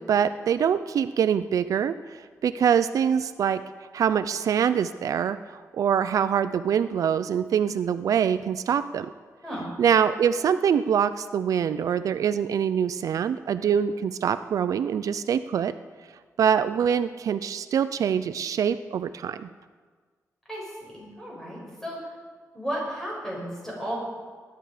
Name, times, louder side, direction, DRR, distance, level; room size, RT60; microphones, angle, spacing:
voice 1, 0.0-3.6 3.9-9.1 9.8-15.7 16.4-19.5, right 8 dB, 75° right, 13 dB, 0.4 m, -24 dB
voice 2, 20.5-22.1 22.5-24.0, equal, 10° left, -4 dB, 5.4 m, -34 dB
20.0 x 10.0 x 5.0 m, 1.5 s
wide cardioid pair, 140°, 6 cm